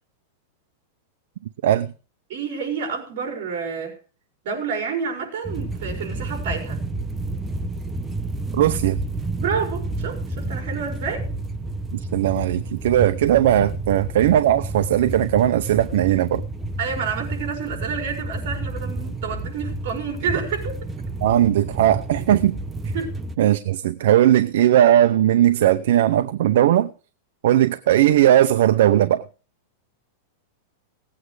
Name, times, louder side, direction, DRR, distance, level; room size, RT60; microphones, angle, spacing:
voice 1, 2.3-4.0 4.4-6.8 9.4-11.3 16.8-20.9 22.9-23.1, right 6 dB, 55° right, 5.1 m, -29 dB
sound 1, 5.4-23.4, right 2 dB, 10° right, 0.8 m, -30 dB
voice 2, 8.5-9.0 11.9-16.4 21.2-22.6 23.4-26.9 27.4-29.3, right 12 dB, 70° right, 0.7 m, -18 dB
18.0 x 8.8 x 4.8 m
supercardioid pair, 160°, 0 cm